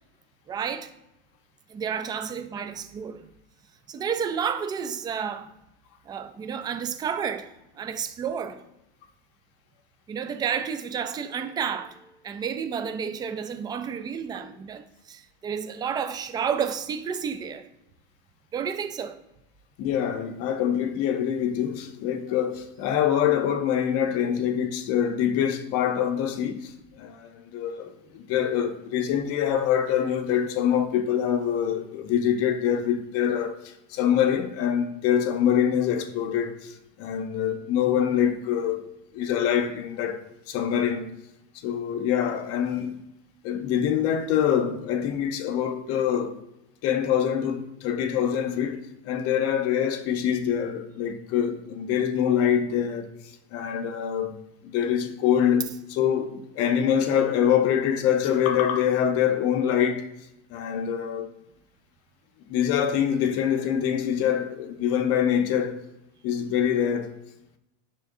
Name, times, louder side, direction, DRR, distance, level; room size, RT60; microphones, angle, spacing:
voice 1, 0.5-0.9 1.7-3.3 3.9-5.5 6.1-7.5 7.8-8.6 10.1-17.7 18.5-19.2, right 7 dB, 15° right, 0.4 m, -31 dB
voice 2, 19.8-38.9 39.1-41.1 41.5-42.9 43.4-46.4 46.8-53.1 53.5-54.4 54.6-60.1 60.5-61.3 62.5-65.8 66.2-67.1, left 9 dB, 50° left, 0.9 m, -25 dB
10.5 x 3.8 x 2.6 m
supercardioid pair, 135°, 31 cm